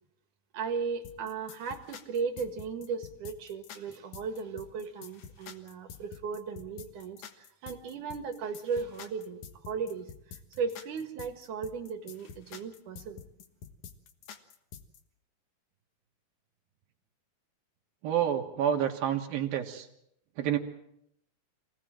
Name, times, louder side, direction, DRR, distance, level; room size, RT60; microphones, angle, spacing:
voice 1, 0.5-13.2, right 5 dB, 65° right, 6 dB, 3.2 m, -36 dB
sound 1, 1.0-15.0, left 7 dB, 60° left, 2.6 m, -48 dB
voice 2, 18.0-19.9 20.4-20.6, right 9 dB, 85° right, 2 dB, 3.4 m, -28 dB
26.0 x 18.5 x 7.6 m, 0.79 s
omnidirectional pair, 4.1 m